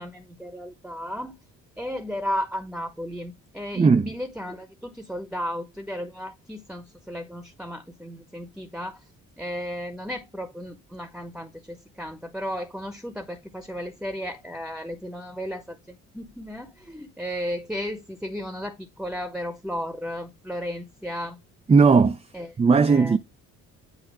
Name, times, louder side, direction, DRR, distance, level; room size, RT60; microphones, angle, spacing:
voice 1, 0.0-1.4 1.8-9.0 9.4-21.4 22.3-22.5 22.9-23.2, equal, ahead, 1.0 m, -34 dB
voice 2, 3.7-4.1 21.7-22.2 22.6-23.2, right 5 dB, 20° right, 0.5 m, -17 dB
7.9 x 2.7 x 6.0 m
cardioid pair, 90°, 30 cm